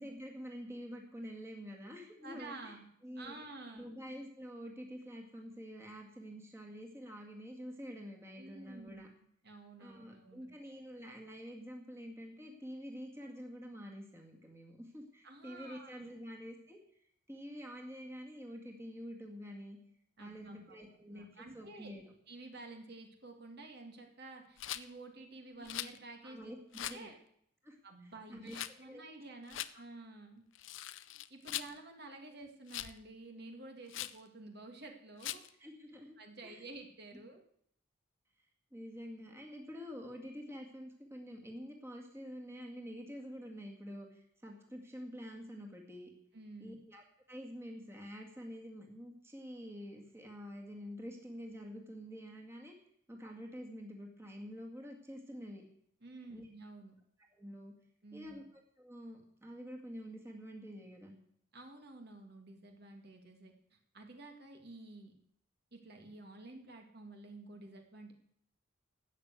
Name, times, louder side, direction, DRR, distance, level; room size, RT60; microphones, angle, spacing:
voice 1, 0.0-2.8 3.0-3.4 3.7-9.1 9.8-16.8 17.3-19.8 20.2-22.1 26.2-26.6 26.8-27.1 27.6-29.0 35.6-36.1 36.4-36.7 38.7-46.1 46.6-52.7 53.1-55.6 56.3-56.5 57.3-57.7 58.1-61.1, equal, 15° right, 1 dB, 2.0 m, -47 dB
voice 2, 2.2-2.9 3.2-3.9 8.4-9.0 9.4-10.5 15.2-16.1 20.2-20.8 21.1-21.9 22.3-27.2 27.8-30.4 31.3-35.4 36.2-37.4 46.3-46.8 56.0-56.9 58.0-58.4 61.5-63.5 63.9-65.1 65.7-68.1, right 2 dB, 55° right, 4 dB, 2.1 m, -51 dB
Rattle, 24.6-24.9 25.7-26.0 26.7-27.0 28.5-28.7 29.5-29.7 30.6-31.7 32.7-33.0 33.9-34.2 35.2-35.5, left 13 dB, 70° left, 0.6 m, -41 dB
12.5 x 8.2 x 8.2 m, 0.67 s
head